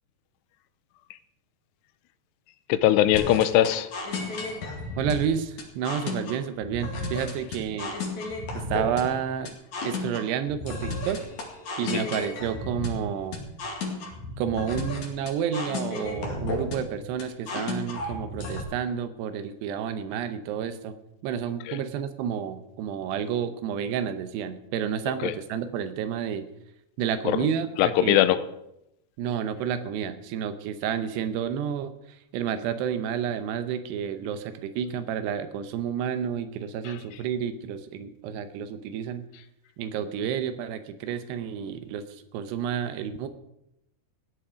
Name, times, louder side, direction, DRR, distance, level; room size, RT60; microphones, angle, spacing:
voice 1, 2.7-3.9 11.9-12.0 21.7-21.8 25.2-25.3 27.3-27.4 27.8-28.4 36.9-37.0, left 13 dB, 85° left, 14 dB, 2.8 m, -21 dB
sound 1, 3.1-18.6, left 2 dB, 50° left, 3.2 m, -33 dB
voice 2, 5.0-8.0 8.5-9.5 9.8-11.3 11.8-13.4 14.4-20.9 21.2-26.5 27.0-28.2 29.2-39.3 39.8-43.3, right 8 dB, 80° right, 10 dB, 3.0 m, -30 dB
16.5 x 10.0 x 5.0 m, 0.84 s
omnidirectional pair, 4.8 m